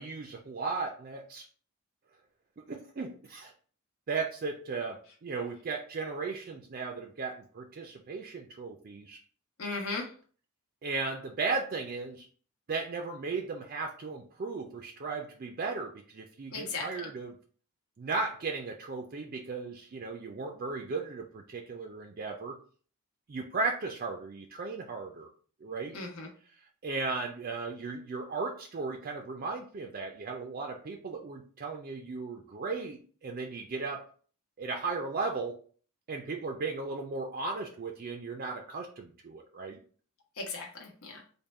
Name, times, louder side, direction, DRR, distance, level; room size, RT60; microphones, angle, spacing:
voice 1, 0.0-1.5 2.7-3.5 4.1-9.2 10.8-12.3 12.7-17.4 18.0-22.6 23.3-25.3 25.6-26.0 26.8-34.1 34.6-35.6 36.1-39.8, right 4 dB, 40° right, 2 dB, 0.4 m, -36 dB
voice 2, 9.6-10.1 16.5-16.9 25.9-26.3 40.4-41.2, left 3 dB, 75° left, -1 dB, 0.9 m, -36 dB
3.5 x 2.2 x 4.1 m, 0.43 s
head